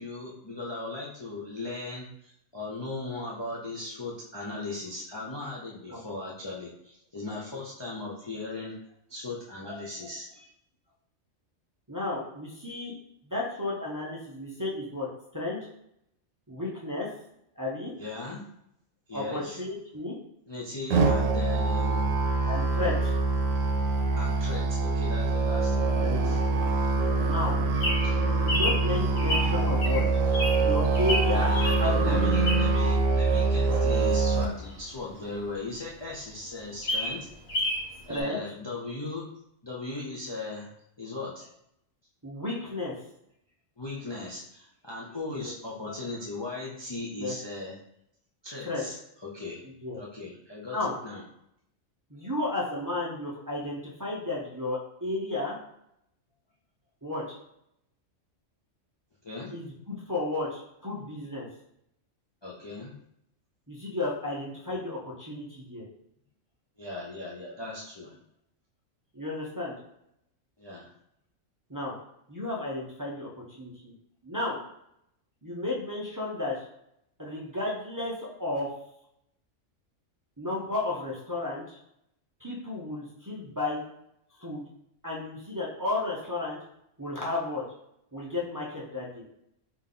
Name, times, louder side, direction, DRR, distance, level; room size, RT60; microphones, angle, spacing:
voice 1, 0.0-8.7 9.1-10.5 18.0-18.4 19.1-19.6 20.5-22.2 24.2-26.4 28.0-28.2 31.3-37.3 38.1-39.2 39.6-40.7 41.0-41.5 43.8-47.8 48.4-49.0 49.2-49.6 50.0-51.2 59.2-59.5 62.4-62.9 66.8-68.2 70.6-70.9, left 3 dB, 30° left, -4 dB, 0.5 m, -38 dB
voice 2, 11.9-12.9 13.2-15.1 15.3-15.6 16.5-17.1 17.6-17.9 19.1-20.1 22.4-23.2 26.0-26.3 27.3-27.6 28.4-30.0 30.6-32.2 38.1-38.4 42.2-42.9 45.3-45.5 47.2-47.3 48.6-48.8 49.8-50.0 50.7-50.9 52.1-55.6 57.0-57.4 59.5-61.5 63.7-65.8 69.1-69.7 71.7-71.9 72.3-73.9 74.2-74.6 75.4-76.7 77.2-78.7 80.4-81.8 82.4-83.8 84.4-84.6 85.0-86.6 87.0-87.6 88.1-89.2, left 2 dB, 20° right, -5 dB, 0.6 m, -33 dB
Musical instrument, 20.9-34.4, right 3 dB, 85° right, 1.0 m, -24 dB
Bird vocalization bird call bird song, 27.4-32.9 33.3-35.5 35.9-36.0 36.2-36.3 36.6-37.9 38.1-38.2, equal, 55° left, 1.2 m, -31 dB
3.6 x 3.0 x 3.8 m, 0.77 s
omnidirectional pair, 1.3 m